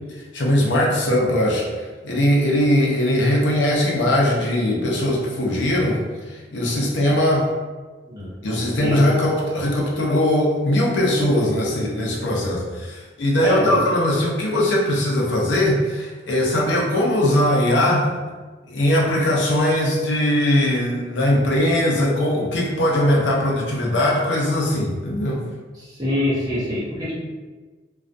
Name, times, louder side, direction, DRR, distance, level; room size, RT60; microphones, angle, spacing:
voice 1, 0.3-6.0 6.3-7.5 8.4-18.1 18.7-25.4, left 1 dB, 85° left, -2 dB, 0.6 m, -20 dB
voice 2, 8.8-9.2 13.4-13.8 26.0-27.1, left 1 dB, 20° right, -9 dB, 0.9 m, -24 dB
2.3 x 2.2 x 2.6 m, 1.3 s
head